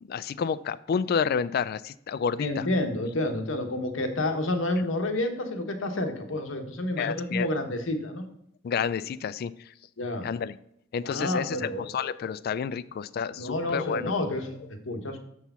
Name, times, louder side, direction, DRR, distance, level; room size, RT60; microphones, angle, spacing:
voice 1, 0.0-2.7 7.0-7.5 8.6-9.5 10.2-10.5 10.9-14.1, left 6 dB, 50° left, 17 dB, 0.3 m, -30 dB
voice 2, 2.4-8.2 10.0-10.3 11.0-11.8 13.4-15.2, left 1 dB, 80° left, 5 dB, 1.1 m, -29 dB
6.9 x 4.7 x 5.5 m, 0.73 s
head